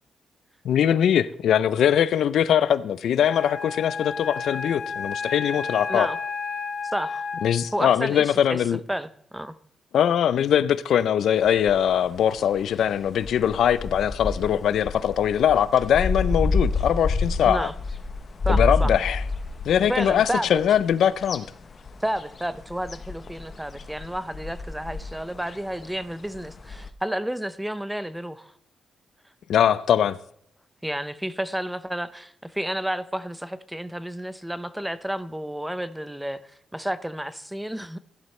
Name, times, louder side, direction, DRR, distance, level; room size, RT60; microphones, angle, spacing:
voice 1, 0.6-6.1 7.4-8.8 9.9-17.7 18.5-19.2 19.6-21.5 29.5-30.2, left 9 dB, 75° left, 0.5 m, -21 dB
Wind instrument woodwind instrument, 3.2-7.8, left 5 dB, 60° left, 3.2 m, -32 dB
voice 2, 6.8-7.3 7.7-8.6 8.9-9.6 17.4-17.7 18.4-18.9 19.8-20.5 22.0-28.5 30.8-38.0, right 1 dB, 5° right, 0.5 m, -31 dB
sound 1, 11.4-26.9, left 3 dB, 35° left, 0.9 m, -30 dB
16.0 x 11.0 x 3.2 m
cardioid pair, 140°, 0 cm